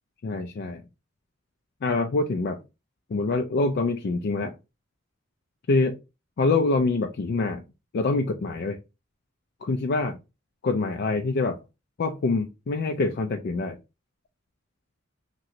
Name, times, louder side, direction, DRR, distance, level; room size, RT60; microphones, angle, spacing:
voice 1, 0.2-0.8 1.8-2.6 3.1-4.5 5.7-5.9 6.4-7.6 7.9-8.8 9.6-10.2 10.6-11.6 12.0-13.8, left 3 dB, 55° left, 4 dB, 0.4 m, -25 dB
3.0 x 2.8 x 2.6 m, 0.26 s
head